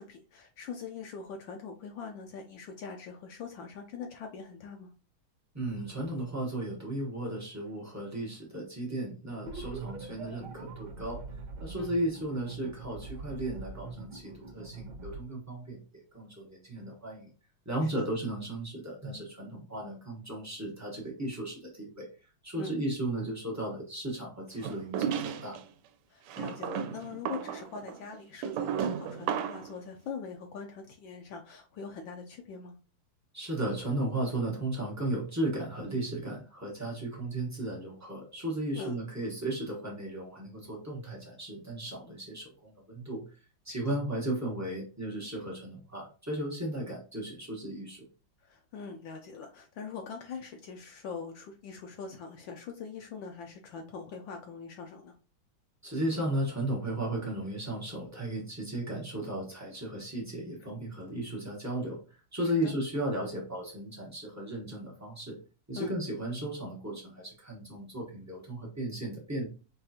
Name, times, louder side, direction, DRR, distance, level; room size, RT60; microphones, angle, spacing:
voice 1, 0.0-4.9 11.7-11.9 22.6-22.8 26.1-32.8 38.7-39.0 43.7-44.0 48.4-55.2 62.6-62.7 65.7-65.9, left 5 dB, 75° left, 3 dB, 1.2 m, -42 dB
voice 2, 5.5-11.2 11.6-15.8 16.1-17.3 17.6-22.1 22.4-25.6 33.3-43.2 43.6-48.1 55.8-62.0 62.3-65.4 65.7-69.5, right 1 dB, 25° right, -3 dB, 0.3 m, -35 dB
sound 1, 9.4-15.2, right 3 dB, 60° right, 1.3 m, -43 dB
sound 2, 24.6-25.6 26.3-29.7, right 8 dB, 90° right, 1.5 m, -34 dB
5.3 x 2.4 x 2.7 m, 0.35 s
omnidirectional pair, 2.4 m